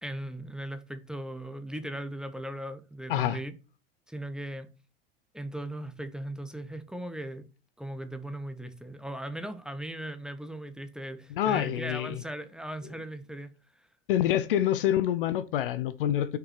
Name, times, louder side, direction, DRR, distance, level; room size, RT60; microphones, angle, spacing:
voice 1, 0.0-3.5 4.1-4.7 5.3-7.4 7.8-13.9, right 1 dB, ahead, 1.0 m, -38 dB
voice 2, 11.3-12.2 14.1-16.4, left 11 dB, 60° left, 0.8 m, -27 dB
6.1 x 5.9 x 6.0 m
figure-of-eight pair, 80°, 30 cm